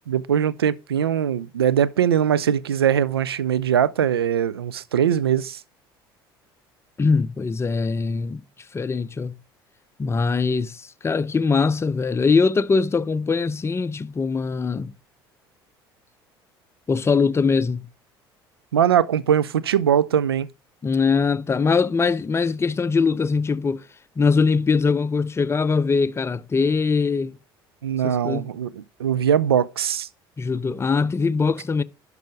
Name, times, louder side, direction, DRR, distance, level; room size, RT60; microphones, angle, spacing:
voice 1, 0.1-5.6 18.7-20.5 27.8-30.1, right 9 dB, 80° right, 0.5 m, -21 dB
voice 2, 7.0-8.4 8.7-9.4 10.0-14.9 16.9-17.9 20.8-23.8 24.2-27.4 28.0-28.5 30.4-31.8, left 4 dB, 20° left, 0.6 m, -22 dB
11.5 x 4.9 x 4.8 m
figure-of-eight pair, 65°, 13 cm